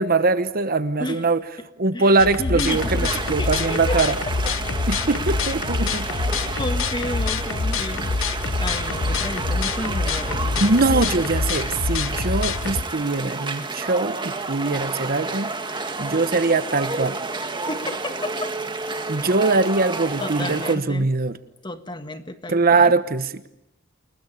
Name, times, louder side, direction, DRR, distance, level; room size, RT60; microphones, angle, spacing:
voice 1, 0.0-1.4 1.8-4.2 4.9-6.5 10.6-17.2 19.1-21.4 22.5-23.3, right 3 dB, 45° right, 12 dB, 1.1 m, -22 dB
voice 2, 1.9-3.1 3.4-4.1 6.1-6.3 6.6-8.2 8.6-10.7 17.7-18.5 20.2-21.1 21.6-22.9, left 1 dB, 20° left, 8 dB, 1.7 m, -32 dB
sound 1, 2.2-12.8, left 4 dB, 65° left, 1.0 m, -26 dB
sound 2, 2.7-20.8, right 3 dB, 25° right, 1.9 m, -30 dB
29.5 x 20.5 x 10.0 m, 0.88 s
head